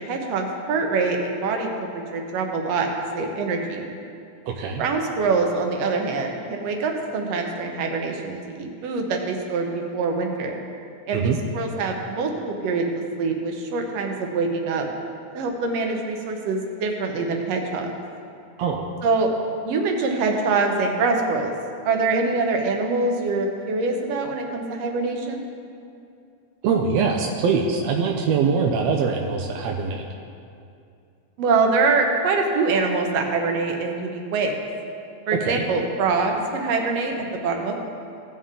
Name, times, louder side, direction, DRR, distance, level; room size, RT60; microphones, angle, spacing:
voice 1, 0.0-2.9 3.1-3.9 4.8-10.6 11.1-12.9 13.2-14.9 15.3-17.9 19.0-19.3 19.6-21.5 21.8-25.4 31.4-34.5 35.3-37.9, right 4 dB, 65° right, 2 dB, 1.9 m, -24 dB
voice 2, 4.5-4.8 11.1-11.4 18.6-18.9 26.6-30.0 35.4-35.6, right 5 dB, 80° right, 1 dB, 1.6 m, -23 dB
16.5 x 5.5 x 3.7 m, 2.5 s
omnidirectional pair, 3.5 m